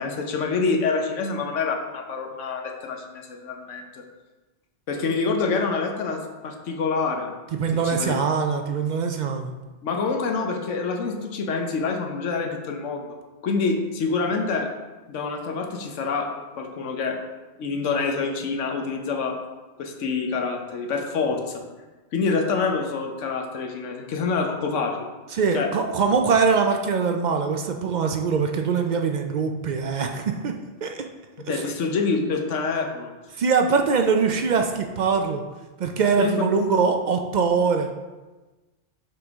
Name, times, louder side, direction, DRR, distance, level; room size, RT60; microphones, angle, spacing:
voice 1, 0.0-4.0 4.9-7.3 7.8-8.1 9.8-13.1 13.4-14.7 15.1-16.3 16.6-17.2 17.6-19.4 19.8-21.6 22.1-25.1 25.5-25.7 31.5-33.1 36.2-36.4, left 4 dB, 90° left, 3 dB, 1.1 m, -26 dB
voice 2, 7.6-9.5 25.3-30.5 30.8-31.0 31.5-31.6 33.4-35.4 35.8-37.9, right 5 dB, 60° right, 4 dB, 0.4 m, -22 dB
5.8 x 5.3 x 3.5 m, 1.2 s
omnidirectional pair, 1.2 m